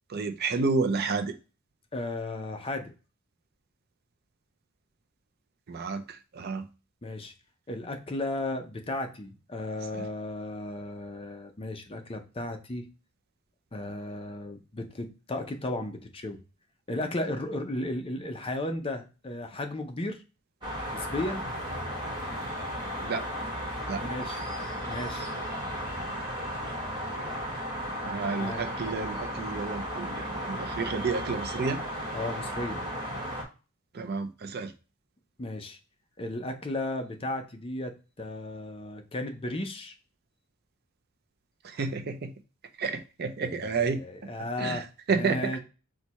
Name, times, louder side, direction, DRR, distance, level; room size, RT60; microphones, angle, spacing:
voice 1, 0.1-1.4 5.7-6.7 9.9-10.1 23.0-23.3 23.9-24.1 28.0-31.8 33.9-34.7 41.6-42.3 42.8-44.0 44.6-45.6, right 4 dB, 45° right, 0.5 m, -30 dB
voice 2, 1.9-2.9 7.0-7.3 7.7-12.9 13.7-16.4 16.9-20.2 20.9-21.4 23.9-24.4 24.9-25.3 28.3-28.6 32.1-32.8 35.4-35.8 36.2-39.9 43.4-45.6, left 1 dB, 25° left, 0.5 m, -35 dB
sound 1, 20.6-33.4, equal, 20° right, 1.2 m, -35 dB
4.5 x 2.2 x 4.0 m
head